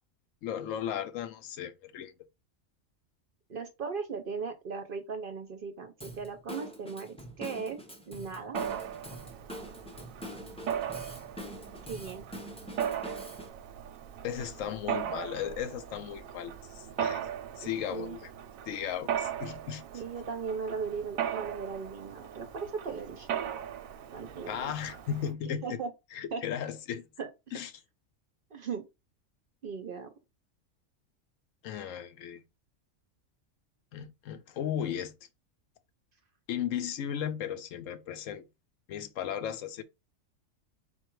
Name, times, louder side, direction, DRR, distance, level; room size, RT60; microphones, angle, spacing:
voice 1, 0.4-2.1 14.2-17.3 17.6-18.3 18.7-19.8 24.4-25.8 26.1-27.1 27.5-27.7 31.6-32.4 33.9-35.1 36.5-38.4 38.9-39.8, left 9 dB, 75° left, 1.0 m, -36 dB
voice 2, 3.5-8.6 11.8-12.3 17.6-18.2 19.9-23.3 24.1-24.7 25.4-25.9 26.3-26.4 27.2-27.3 28.5-28.9 29.6-30.1, right 5 dB, 55° right, 0.7 m, -38 dB
Drum kit / Drum, 6.0-13.5, equal, 5° left, 0.5 m, -44 dB
Mechanisms, 8.5-25.3, right 9 dB, 90° right, 1.0 m, -38 dB
4.4 x 2.3 x 4.5 m
omnidirectional pair, 1.4 m